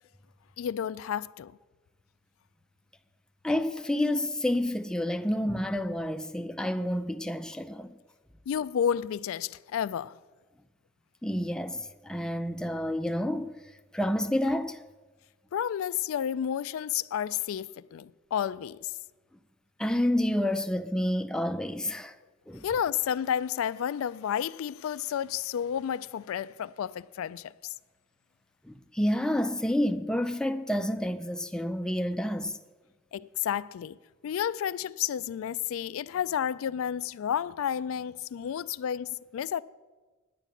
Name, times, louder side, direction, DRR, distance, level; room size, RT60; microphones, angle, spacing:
voice 1, 0.6-1.6 8.5-10.2 15.5-18.9 22.6-27.7 33.1-34.0 34.2-39.6, left 9 dB, 75° left, 0.3 m, -31 dB
voice 2, 3.4-7.9 11.2-13.5 13.9-14.8 19.8-22.2 22.5-22.7 28.6-32.6, left 1 dB, 5° left, 0.4 m, -29 dB
9.9 x 9.1 x 7.1 m
head